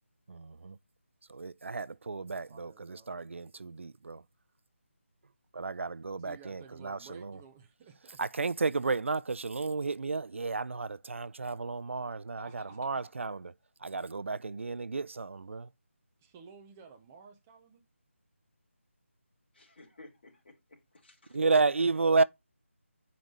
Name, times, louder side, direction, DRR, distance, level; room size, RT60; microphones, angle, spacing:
voice 1, 0.3-0.8 1.3-4.2 5.5-7.4 8.2-13.5 13.8-15.7 21.3-22.2, right 3 dB, 65° right, 0.5 m, -32 dB
voice 2, 2.2-3.1 6.2-8.2 12.4-13.1 16.2-17.8, right 5 dB, 10° right, 0.4 m, -54 dB
voice 3, 19.5-21.4, left 2 dB, 45° left, 3.3 m, -56 dB
7.6 x 5.2 x 4.0 m
figure-of-eight pair, 170°, 7 cm